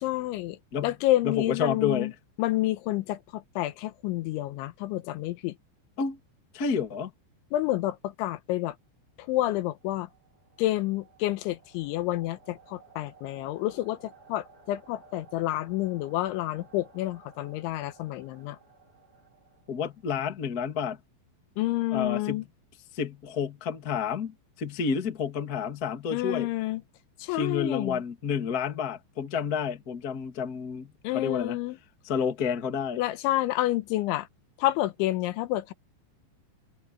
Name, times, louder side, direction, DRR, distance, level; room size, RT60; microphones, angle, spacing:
voice 1, 0.0-2.1 2.4-5.5 7.5-8.8 9.2-10.1 10.6-18.6 21.6-22.4 26.1-26.8 27.2-28.0 31.0-31.8 33.0-34.3 34.6-35.7, left 16 dB, 85° left, 3.2 m, -29 dB
voice 2, 1.2-2.1 6.0-6.2 6.5-7.1 19.7-21.0 21.9-22.4 22.9-26.5 27.3-31.6 32.0-33.0, left 6 dB, 40° left, 1.3 m, -30 dB
sound 1, 9.3-20.2, right 5 dB, 20° right, 6.7 m, -57 dB
omnidirectional pair, 5.5 m